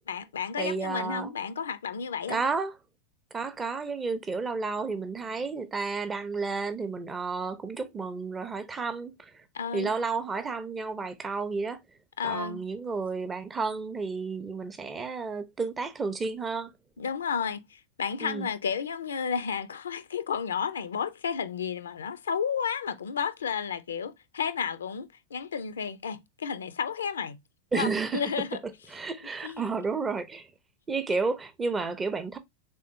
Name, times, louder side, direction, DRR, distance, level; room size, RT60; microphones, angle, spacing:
voice 1, 0.1-2.4 9.5-9.9 12.2-12.6 17.0-27.4 27.7-28.6 29.4-29.6, left 6 dB, 65° left, 0.4 m, -32 dB
voice 2, 0.6-1.3 2.3-2.7 3.3-9.3 9.7-11.8 12.2-16.7 18.2-18.5 27.7-28.2 28.9-30.5 30.9-32.4, right 4 dB, 15° right, 0.6 m, -31 dB
3.6 x 3.4 x 2.7 m
figure-of-eight pair, 90°, 0 cm